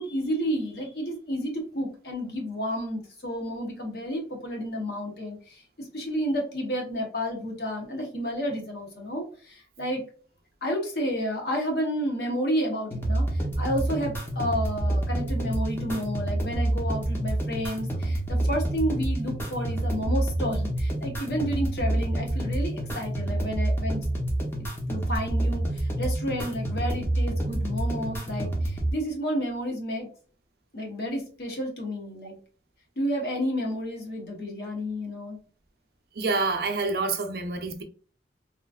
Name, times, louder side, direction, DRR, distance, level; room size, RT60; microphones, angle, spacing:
voice 1, 0.0-10.0 10.6-24.0 24.9-30.1 30.7-32.3 33.0-35.4, equal, 60° left, 1.0 m, -31 dB
sound 1, 12.9-28.9, right 1 dB, 10° left, 0.6 m, -28 dB
voice 2, 36.2-37.8, right 3 dB, 55° right, 0.5 m, -27 dB
3.0 x 2.5 x 2.3 m
head